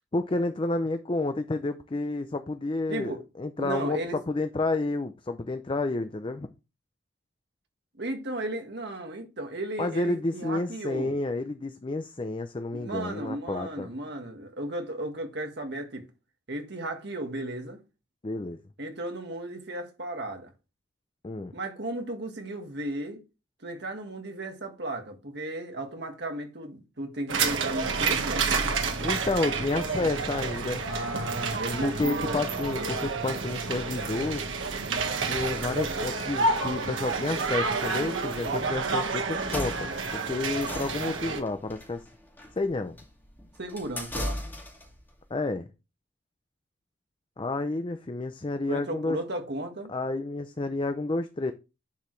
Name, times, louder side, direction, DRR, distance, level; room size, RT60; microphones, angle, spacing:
voice 1, 0.1-6.5 9.8-13.9 18.2-18.6 21.2-21.5 29.0-30.9 31.8-34.4 35.2-39.9 40.3-42.0 42.6-43.0 45.3-45.7 47.4-49.2 49.9-51.5, left 2 dB, 25° left, 0.5 m, -30 dB
voice 2, 2.9-3.2 3.6-4.2 8.0-11.2 12.7-16.1 16.5-17.8 18.8-20.5 21.5-23.2 23.6-28.7 30.9-32.4 43.6-44.4 48.7-49.9, right 1 dB, 60° right, 1.6 m, -35 dB
sound 1, 27.3-41.4, right 4 dB, 85° right, 1.3 m, -29 dB
sound 2, 39.3-45.0, left 1 dB, 10° left, 2.2 m, -37 dB
10.0 x 4.7 x 3.2 m
head